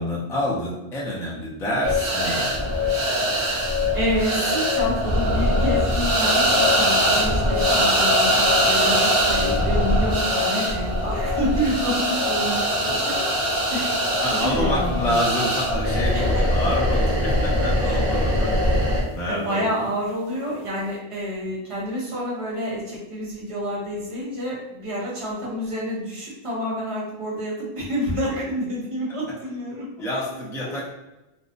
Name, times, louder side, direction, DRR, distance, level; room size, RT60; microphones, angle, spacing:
voice 1, 0.0-2.7 14.2-18.8 19.1-19.9 30.0-30.8, left 1 dB, 5° left, -5 dB, 0.4 m, -27 dB
sound 1, 1.8-19.1, equal, 70° right, 0.8 m, -22 dB
voice 2, 3.9-13.3 13.7-14.0 14.3-15.1 16.1-16.2 17.8-18.0 19.3-29.9 30.6-30.7, equal, 35° right, -6 dB, 0.8 m, -28 dB
2.6 x 2.0 x 2.5 m, 0.99 s
omnidirectional pair, 1.0 m